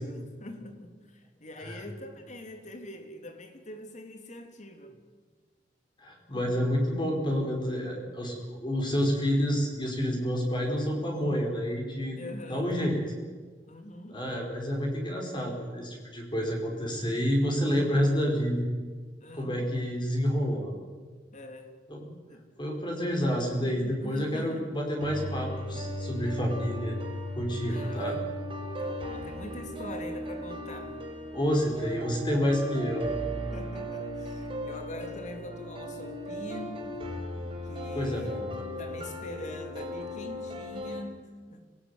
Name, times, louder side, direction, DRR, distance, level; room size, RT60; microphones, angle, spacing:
voice 1, 0.0-5.0 12.2-12.7 13.7-14.3 19.2-19.8 21.3-21.8 22.3-22.4 23.5-24.7 27.7-28.2 28.8-31.0 33.5-37.0 37.6-41.6, left 1 dB, 40° left, 6 dB, 3.3 m, -44 dB
voice 2, 6.0-12.2 12.5-13.0 14.1-18.7 19.3-20.7 21.9-22.0 22.6-26.9 27.3-28.2 31.3-33.0 37.9-38.6, equal, 25° left, 1 dB, 5.0 m, -29 dB
sound 1, 25.0-41.0, equal, 30° right, 4.7 m, -36 dB
25.5 x 19.0 x 9.8 m, 1.5 s
head